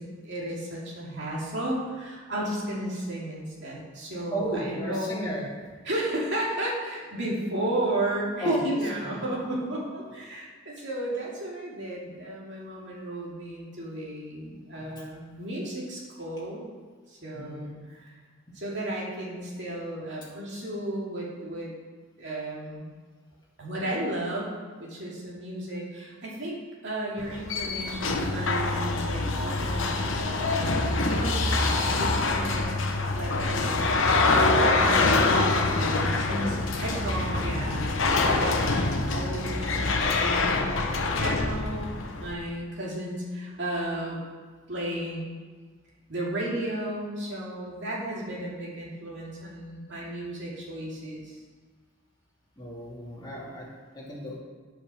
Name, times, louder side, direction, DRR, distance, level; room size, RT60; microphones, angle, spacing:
voice 1, 0.0-5.2 5.8-16.6 17.1-18.2 18.5-21.7 22.2-22.8 23.6-24.5 24.8-26.6 26.8-32.7 33.1-44.2 44.7-45.3 46.1-51.4, right 1 dB, 60° right, -5 dB, 2.6 m, -33 dB
voice 2, 4.3-5.7 8.4-8.6 9.0-9.2 14.7-15.0 17.3-17.7 18.5-18.6 36.2-37.0 52.6-54.4, right 1 dB, 20° left, -5 dB, 2.3 m, -35 dB
sound 1, 27.2-42.3, left 3 dB, 70° left, 0.9 m, -25 dB
8.6 x 6.9 x 6.4 m, 1.5 s
head